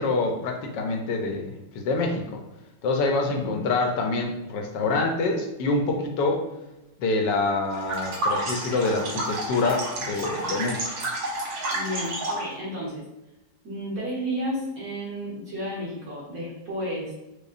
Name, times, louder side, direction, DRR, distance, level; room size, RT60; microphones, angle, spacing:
voice 1, 0.0-2.4 2.8-6.4 7.0-10.8, left 3 dB, 85° left, 2 dB, 1.3 m, -26 dB
voice 2, 3.2-3.7 11.7-13.0 13.6-17.1, equal, 55° right, -7 dB, 1.7 m, -32 dB
sound 1, 7.7-12.5, right 1 dB, 85° right, 1.7 m, -30 dB
4.9 x 2.1 x 2.5 m, 0.95 s
omnidirectional pair, 1.9 m